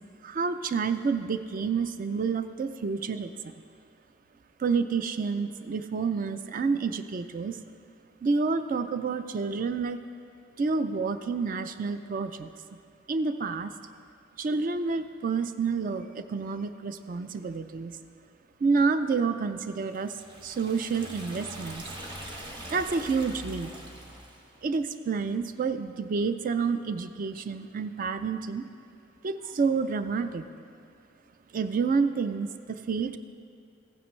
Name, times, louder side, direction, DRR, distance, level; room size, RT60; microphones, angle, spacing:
voice 1, 0.2-3.5 4.6-7.6 8.2-10.0 10.6-12.5 13.1-13.7 14.4-17.9 18.6-22.0 22.7-23.7 24.6-28.7 29.2-30.4 31.5-33.2, right 4 dB, 45° right, 11 dB, 0.4 m, -29 dB
Liquid, 19.9-24.5, equal, 25° right, 1.2 m, -42 dB
15.0 x 9.2 x 3.1 m, 2.4 s
head